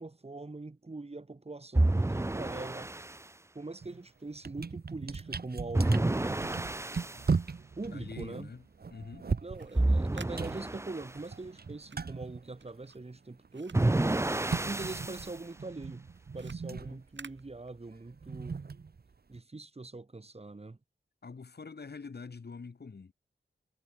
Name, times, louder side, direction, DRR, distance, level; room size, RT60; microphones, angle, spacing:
voice 1, 0.0-2.9 3.5-6.3 7.8-8.5 9.4-13.9 14.6-16.0 16.3-18.6 19.3-20.8, right 3 dB, 30° right, 1.6 m, -42 dB
sound 1, 1.7-3.2 5.7-7.2 9.7-11.1 13.7-15.3, right 2 dB, 15° right, 0.6 m, -29 dB
sound 2, 3.8-4.0 4.3-13.2 13.4-19.4, right 5 dB, 55° right, 1.1 m, -38 dB
voice 2, 7.9-8.6 8.9-9.3 16.7-17.0 21.2-23.1, left 4 dB, 55° left, 1.7 m, -45 dB
sound 3, 9.5-14.9 15.2-18.2, right 5 dB, 70° right, 3.5 m, -54 dB
wide cardioid pair, 70°, 20 cm